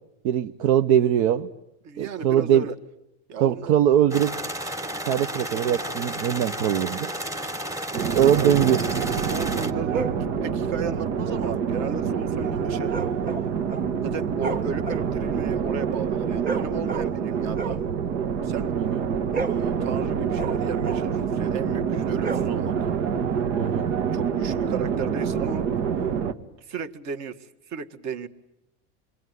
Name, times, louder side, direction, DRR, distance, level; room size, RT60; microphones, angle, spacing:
voice 1, 0.2-1.5 2.0-2.7 3.4-4.3 5.0-7.1 8.1-8.8 18.8-19.0 23.6-23.9, right 10 dB, 70° right, 6 dB, 1.0 m, -21 dB
voice 2, 1.8-2.7 3.3-3.7 8.1-8.5 9.3-10.1 10.4-12.9 14.0-17.8 18.4-18.7 19.4-22.9 24.1-25.7 26.6-28.3, right 6 dB, 50° right, 7 dB, 1.8 m, -34 dB
sound 1, 4.1-9.7, right 1 dB, 10° right, 1.1 m, -32 dB
sound 2, 7.9-26.3, right 7 dB, 90° right, 1.8 m, -27 dB
sound 3, 9.9-10.3 12.9-14.0 14.3-17.3 17.5-18.8 19.1-21.2 22.1-22.9, right 5 dB, 25° right, 1.6 m, -33 dB
27.5 x 22.0 x 9.5 m, 0.85 s
supercardioid pair, 125°, 35 cm